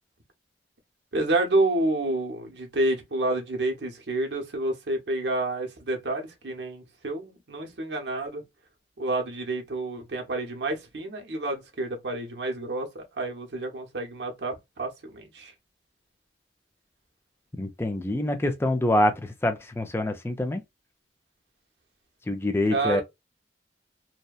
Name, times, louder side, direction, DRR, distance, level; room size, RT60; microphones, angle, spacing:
voice 1, 1.1-8.4 9.0-15.5 22.7-23.0, right 2 dB, 75° right, 0.8 m, -29 dB
voice 2, 17.6-20.6 22.3-23.0, left 1 dB, 15° left, 0.4 m, -25 dB
2.7 x 2.1 x 2.3 m
head